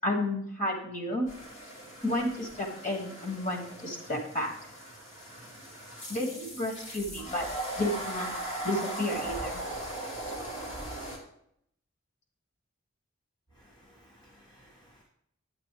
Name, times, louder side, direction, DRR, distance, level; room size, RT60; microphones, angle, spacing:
voice 1, 0.0-1.3 2.0-4.5 6.1-7.5 7.8-8.3 8.6-9.6, left 1 dB, 40° left, 1 dB, 2.0 m, -31 dB
sound 1, 1.3-11.2, right 1 dB, 65° left, 2.7 m, -39 dB
voice 2, 13.6-15.0, equal, 20° left, -1 dB, 1.3 m, -59 dB
9.0 x 8.7 x 3.3 m, 0.70 s
head